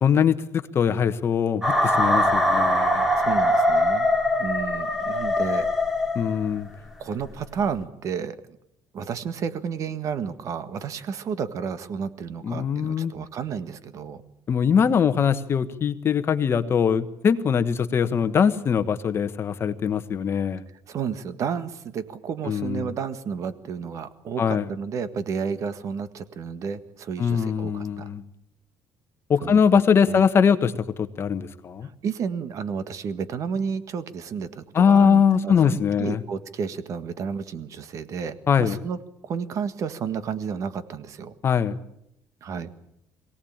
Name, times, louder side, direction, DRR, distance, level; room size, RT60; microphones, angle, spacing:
voice 1, 0.0-3.1 6.1-6.7 12.4-13.1 14.5-20.6 22.5-22.9 24.4-24.7 27.2-28.2 29.3-31.9 34.7-36.2 38.5-38.8 41.4-41.8, left 7 dB, 35° left, 10 dB, 1.3 m, -22 dB
sound 1, 1.6-6.6, left 1 dB, 5° right, 2.8 m, -22 dB
voice 2, 3.1-4.1 4.4-5.7 7.0-8.6 8.9-14.2 20.9-28.1 29.4-29.6 30.1-30.2 31.8-39.0 39.2-41.3 42.4-42.7, right 6 dB, 50° right, 12 dB, 1.6 m, -31 dB
23.0 x 17.5 x 8.8 m, 0.79 s
cardioid pair, 140°, 7 cm